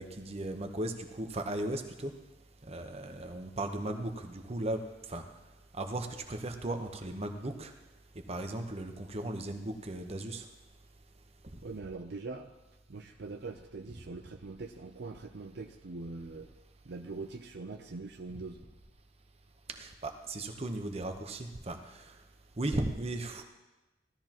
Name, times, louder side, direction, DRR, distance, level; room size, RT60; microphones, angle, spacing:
voice 1, 0.0-2.1 2.7-4.8 5.1-5.2 5.8-7.7 8.3-10.5 19.8-22.1 22.6-23.4, right 1 dB, 35° right, 5 dB, 1.0 m, -36 dB
voice 2, 11.6-12.5 12.9-16.5 16.8-18.6, right 3 dB, 65° right, 5 dB, 0.6 m, -42 dB
16.0 x 12.5 x 3.0 m, 1.1 s
head